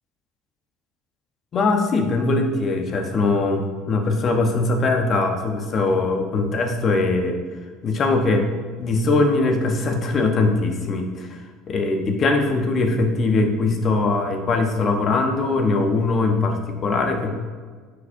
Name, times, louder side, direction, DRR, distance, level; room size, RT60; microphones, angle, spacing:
voice 1, 1.5-7.4 7.8-8.5 8.8-11.4 11.7-17.3, left 3 dB, 40° left, 5 dB, 1.0 m, -21 dB
9.4 x 5.0 x 2.6 m, 1.5 s
hypercardioid pair, 65°, 0 cm